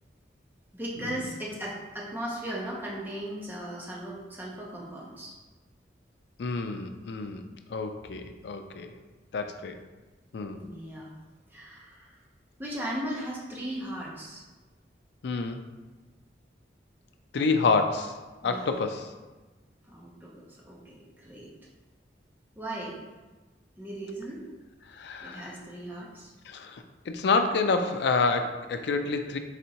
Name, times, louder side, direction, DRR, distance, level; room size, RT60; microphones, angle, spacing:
voice 1, 0.7-5.3 10.5-11.1 11.5-12.2 12.6-14.4 18.4-18.8 19.8-20.3 20.7-21.5 22.6-23.0 23.8-24.4 25.2-26.3, right 1 dB, 10° right, -4 dB, 0.8 m, -37 dB
voice 2, 6.4-7.4 7.7-8.9 9.3-9.8 10.3-10.6 15.2-15.7 17.3-18.2 18.4-19.1 24.9-25.5 26.5-29.4, left 4 dB, 65° left, 7 dB, 0.4 m, -28 dB
4.1 x 3.4 x 2.8 m, 1.2 s
head